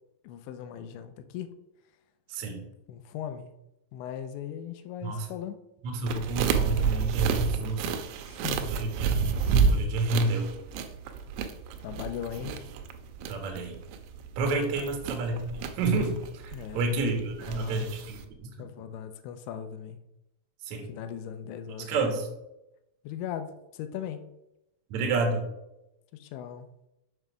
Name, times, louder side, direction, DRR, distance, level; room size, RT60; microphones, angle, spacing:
voice 1, 0.2-1.5 2.9-3.5 3.9-5.6 8.3-8.7 11.8-12.5 16.5-17.0 17.5-17.9 18.6-20.0 20.9-22.0 23.0-24.3 26.1-26.7, left 9 dB, 80° left, 9 dB, 2.9 m, -38 dB
voice 2, 2.3-2.6 5.0-5.3 5.8-8.0 8.7-9.4 9.7-10.5 13.3-13.8 14.4-18.5 20.6-20.9 21.8-22.3 24.9-25.4, right 3 dB, 60° right, 2 dB, 2.0 m, -29 dB
sound 1, 6.1-18.2, right 5 dB, 80° right, 3.1 m, -30 dB
7.8 x 5.6 x 6.1 m, 0.89 s
omnidirectional pair, 5.6 m